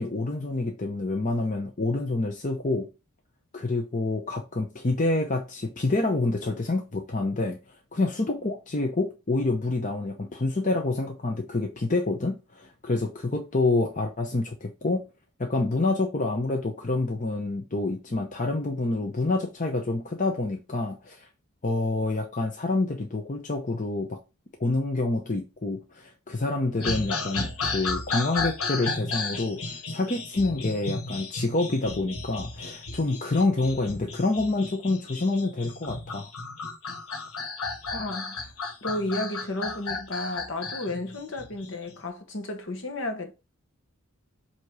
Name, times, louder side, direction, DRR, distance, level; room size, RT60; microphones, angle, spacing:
voice 1, 0.0-2.9 3.5-7.6 7.9-15.1 15.4-21.3 21.6-24.2 24.6-36.3, left 2 dB, 35° left, 0.7 m, -27 dB
sound 1, 26.8-41.9, left 3 dB, 80° left, 1.1 m, -34 dB
voice 2, 37.9-38.5 38.8-43.3, left 2 dB, 60° left, 1.2 m, -33 dB
7.7 x 2.9 x 4.7 m
head